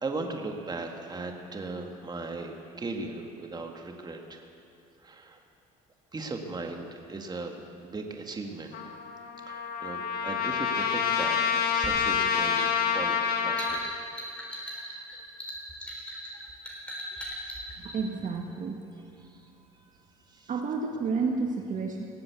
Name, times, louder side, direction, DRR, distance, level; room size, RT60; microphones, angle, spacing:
voice 1, 0.0-4.4 5.0-5.4 6.1-8.8 9.5-14.0 14.5-15.0 19.2-19.5 20.3-20.5, right 3 dB, 25° right, 3 dB, 1.9 m, -38 dB
Trumpet, 8.7-13.9, left 7 dB, 60° left, 1.5 m, -28 dB
sound 1, 11.8-18.0, equal, 5° left, 3.5 m, -39 dB
voice 2, 17.8-18.8 20.5-22.0, right 4 dB, 50° right, 2 dB, 1.5 m, -30 dB
19.0 x 7.6 x 8.3 m, 2.6 s
supercardioid pair, 85°, 18 cm